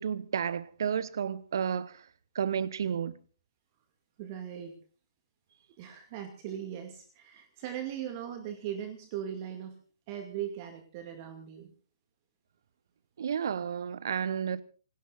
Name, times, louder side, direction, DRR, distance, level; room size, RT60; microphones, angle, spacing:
voice 1, 0.0-2.0 2.3-3.2 13.2-14.6, right 7 dB, 50° right, 1.1 m, -31 dB
voice 2, 4.2-4.7 5.8-9.7 10.1-11.7, right 10 dB, 30° right, 2.4 m, -39 dB
27.5 x 19.5 x 2.6 m
figure-of-eight pair, 125°, 3 cm